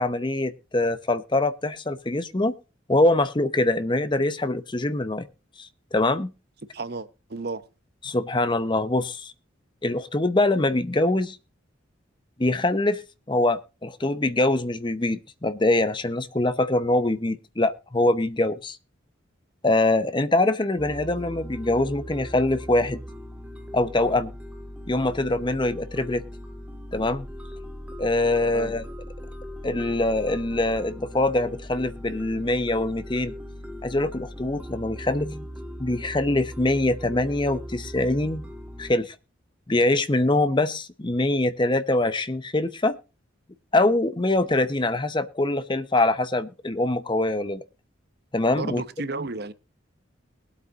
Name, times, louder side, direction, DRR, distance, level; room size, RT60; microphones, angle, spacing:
voice 1, 0.0-2.5 2.9-5.3 5.6-6.3 8.0-9.3 9.8-11.4 12.4-13.0 13.3-18.8 19.6-23.0 23.7-24.3 24.9-26.2 26.9-27.2 28.0-28.8 29.6-33.3 33.8-35.5 35.8-38.4 38.8-39.1 39.7-43.0 43.7-47.6 48.3-48.8, left 2 dB, 25° left, 0.7 m, -24 dB
voice 2, 6.7-7.7 28.4-28.7 48.5-49.5, right 3 dB, 55° right, 0.9 m, -33 dB
sound 1, 20.8-39.0, equal, 5° right, 1.4 m, -39 dB
22.0 x 8.2 x 2.5 m
head